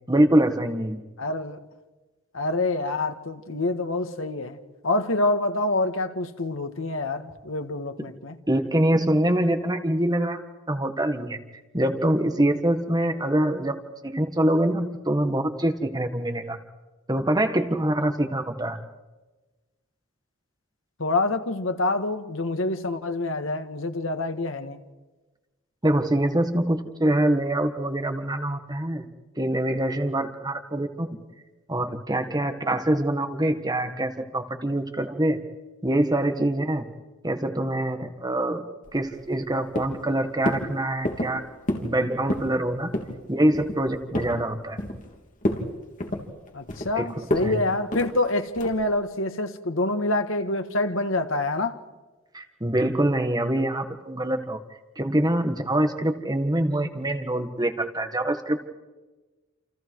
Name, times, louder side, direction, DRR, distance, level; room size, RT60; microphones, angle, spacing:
voice 1, 0.1-1.0 8.5-10.4 10.7-11.4 11.7-16.6 17.1-18.8 25.8-29.1 29.4-31.1 31.7-35.4 35.8-36.9 37.2-38.7 38.9-41.4 41.8-42.9 43.3-44.8 47.0-47.6 52.3-54.6 55.0-58.7, right 1 dB, 20° right, 1.6 m, -24 dB
voice 2, 1.2-1.6 2.3-4.6 4.8-8.4 21.0-24.8 46.5-51.8, left 2 dB, 70° left, 1.8 m, -26 dB
sound 1, 38.8-39.5 39.7-40.1 40.5-40.7 41.0-41.3 41.7-41.9 42.2-42.5 42.9-43.2 43.5-44.4 44.8-45.1 45.4-45.7 46.0-46.9 47.3-47.5 47.9-48.1 48.6-48.8, left 1 dB, 40° left, 3.4 m, -28 dB
29.0 x 28.5 x 4.8 m
head